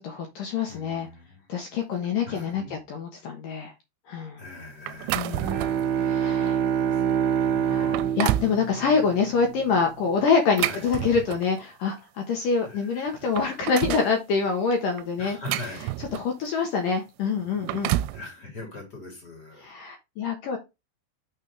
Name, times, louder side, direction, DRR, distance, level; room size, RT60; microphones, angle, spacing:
voice 1, 0.0-1.1 1.5-3.7 4.1-4.4 5.1-5.6 6.0-6.6 7.6-15.4 16.1-18.0 19.6-20.6, left 5 dB, 75° left, 2.0 m, -26 dB
voice 2, 0.7-1.5 2.2-2.8 4.4-5.6 6.8-7.9 10.6-10.9 12.6-13.2 15.2-15.9 18.1-19.7, left 2 dB, 25° left, 3.1 m, -42 dB
sound 1, 4.9-5.9 6.5-6.6 7.3-7.4 7.8-8.6 10.3-11.6 12.7-12.8 13.1-14.1 15.0-16.4 17.4-18.2, right 16 dB, 90° right, 3.2 m, -30 dB
Bowed string instrument, 5.3-9.8, right 8 dB, 70° right, 2.7 m, -26 dB
7.5 x 6.5 x 3.3 m
omnidirectional pair, 5.8 m